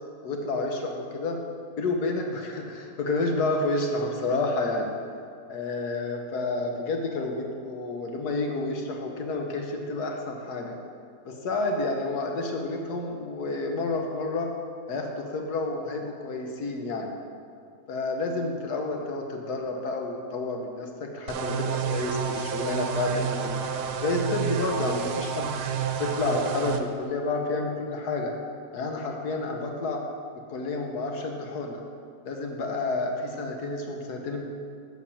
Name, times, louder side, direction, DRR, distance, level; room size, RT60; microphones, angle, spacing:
voice 1, 0.2-1.4 1.8-4.9 5.5-10.7 11.2-14.5 14.9-17.1 17.9-23.5 24.0-25.5 26.0-28.3 28.7-30.0 30.5-31.8 32.2-34.5, left 2 dB, 70° left, 2 dB, 1.6 m, -30 dB
sound 1, 21.3-26.8, right 7 dB, 80° right, 1.3 m, -30 dB
8.0 x 6.2 x 7.2 m, 2.3 s
omnidirectional pair, 1.8 m